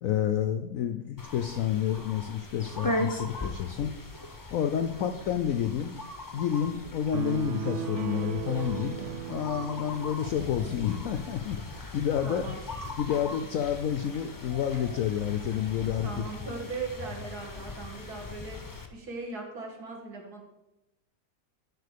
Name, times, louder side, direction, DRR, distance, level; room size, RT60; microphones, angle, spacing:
voice 1, 0.0-3.9 4.5-5.9 6.3-9.0 9.3-12.5 13.0-16.3, left 9 dB, 70° left, 8 dB, 0.8 m, -29 dB
sound 1, 1.2-18.9, left 1 dB, 25° left, 0.4 m, -39 dB
sound 2, 7.1-10.7, right 10 dB, 75° right, 0.6 m, -36 dB
voice 2, 12.2-12.6 16.0-18.6 18.9-20.4, right 3 dB, 60° right, 0 dB, 2.3 m, -38 dB
11.5 x 4.2 x 6.7 m, 0.97 s
omnidirectional pair, 1.9 m